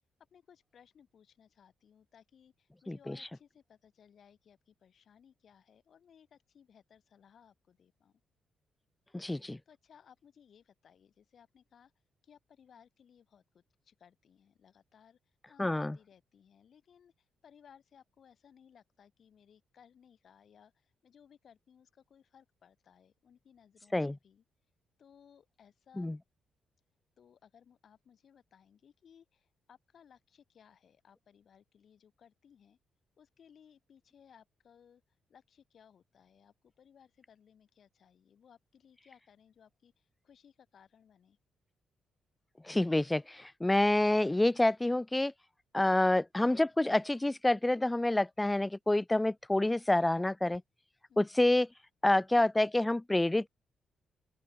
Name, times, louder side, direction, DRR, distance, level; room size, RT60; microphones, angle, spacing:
voice 1, 0.3-8.2 9.7-11.9 12.2-24.4 25.0-26.2 27.2-32.8 33.2-41.4 51.1-51.4, left 8 dB, 60° left, 4.2 m, -62 dB
voice 2, 9.1-9.6 15.6-16.0 23.9-24.2 26.0-26.2 42.6-45.3 45.7-50.6 51.2-51.7 52.0-53.5, left 1 dB, 15° left, 0.3 m, -28 dB
open air
cardioid pair, 80°, 0 cm